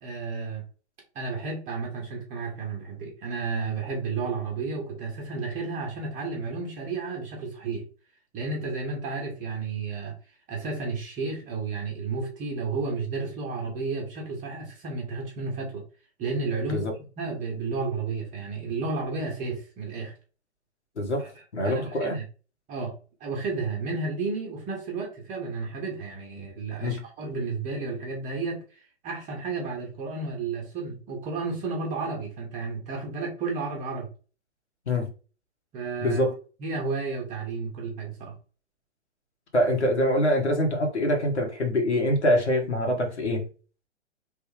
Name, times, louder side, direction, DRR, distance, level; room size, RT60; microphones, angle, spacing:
voice 1, 0.0-0.6 1.1-7.8 8.3-10.1 10.5-15.8 16.2-16.9 17.2-20.1 21.2-21.3 21.6-22.2 22.7-34.1 35.7-36.2 36.6-38.3, right 4 dB, 25° right, 1.2 m, -32 dB
voice 2, 21.0-22.2 26.8-27.0 34.9-35.1 36.0-36.3 39.5-43.5, left 1 dB, 75° left, 1.3 m, -24 dB
3.6 x 2.3 x 3.3 m
figure-of-eight pair, 110°, 34 cm